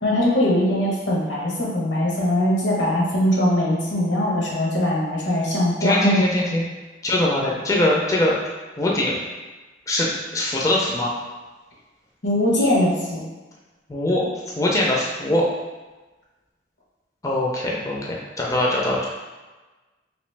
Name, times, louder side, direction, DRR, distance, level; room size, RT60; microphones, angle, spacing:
voice 1, 0.0-6.2 12.2-13.2, left 1 dB, 85° left, -4 dB, 1.0 m, -21 dB
voice 2, 5.8-6.6 7.0-8.3 8.8-9.2 9.9-11.1 13.9-15.5 17.2-19.0, left 1 dB, 20° left, -3 dB, 0.4 m, -22 dB
3.0 x 2.9 x 3.2 m, 1.2 s
head